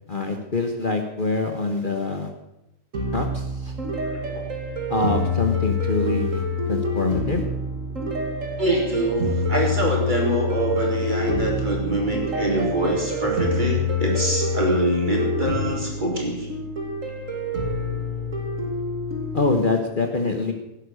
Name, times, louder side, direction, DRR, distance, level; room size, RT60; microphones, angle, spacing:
voice 1, 0.1-2.3 3.1-3.8 4.9-6.4 6.7-7.4 19.3-20.5, left 3 dB, 40° left, 4 dB, 1.4 m, -25 dB
sound 1, 2.9-19.6, left 2 dB, 65° right, 2.9 m, -26 dB
voice 2, 8.6-16.5, right 1 dB, 30° right, -1 dB, 4.3 m, -24 dB
16.5 x 11.0 x 6.6 m, 0.91 s
omnidirectional pair, 1.5 m